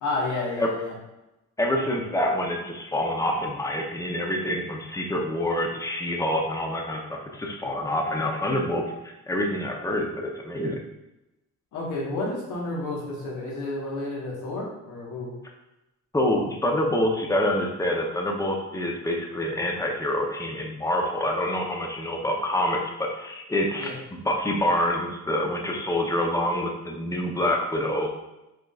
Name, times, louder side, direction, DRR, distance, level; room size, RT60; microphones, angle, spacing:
voice 1, 0.0-0.9 11.7-15.3 23.8-23.9, left 2 dB, 80° left, -3 dB, 1.5 m, -31 dB
voice 2, 1.6-10.8 16.1-28.1, left 1 dB, 10° left, 1 dB, 0.7 m, -26 dB
5.0 x 3.6 x 2.4 m, 0.96 s
cardioid pair, 90°, 30 cm